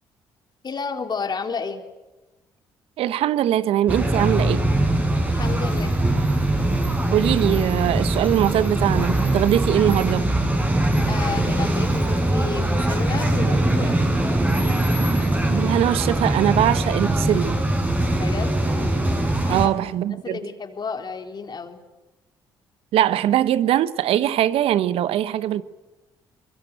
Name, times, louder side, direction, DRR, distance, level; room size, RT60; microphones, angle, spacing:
voice 1, 0.6-1.8 5.2-5.9 11.0-14.0 18.1-18.5 19.4-21.8, left 5 dB, 45° left, 3.8 m, -32 dB
voice 2, 3.0-4.6 7.1-10.3 15.5-17.6 19.5-20.4 22.9-25.6, right 11 dB, 70° right, 1.1 m, -21 dB
sound 1, 3.9-19.7, right 1 dB, 15° right, 5.7 m, -22 dB
24.0 x 20.5 x 9.1 m
hypercardioid pair, 60°, 10 cm